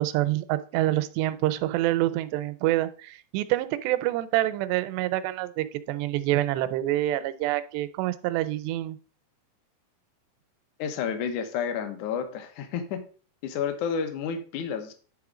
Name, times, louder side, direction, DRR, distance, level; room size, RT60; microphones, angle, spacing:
voice 1, 0.0-9.0, right 15 dB, 85° right, 13 dB, 2.7 m, -27 dB
voice 2, 10.8-13.0 13.4-14.9, left 7 dB, 75° left, 7 dB, 1.7 m, -30 dB
10.5 x 3.6 x 4.9 m, 0.40 s
omnidirectional pair, 4.8 m